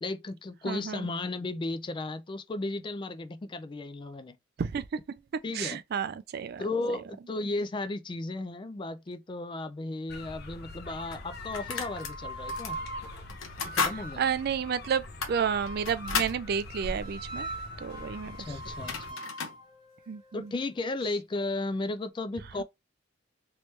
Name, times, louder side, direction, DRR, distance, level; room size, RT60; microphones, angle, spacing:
voice 1, 0.0-4.4 5.4-5.8 6.6-12.8 13.7-14.2 18.4-19.2 20.3-22.6, left 2 dB, 25° left, 0.3 m, -34 dB
voice 2, 0.6-1.1 4.6-5.2 5.5-6.6 14.2-17.5 17.8-18.6 20.1-20.5 22.6-22.7, right 7 dB, 50° right, 0.3 m, -31 dB
sound 1, 10.1-19.1, left 1 dB, 55° left, 0.7 m, -43 dB
sound 2, 10.3-10.4 11.1-12.1 12.5-12.7 13.3-14.0 14.4-14.5 15.0-16.4 18.4-18.5 18.7-19.6, left 5 dB, 90° left, 0.9 m, -33 dB
sound 3, 11.6-14.5 15.4-16.4 17.0-21.0, right 1 dB, 25° right, 0.8 m, -42 dB
3.1 x 3.0 x 3.1 m
head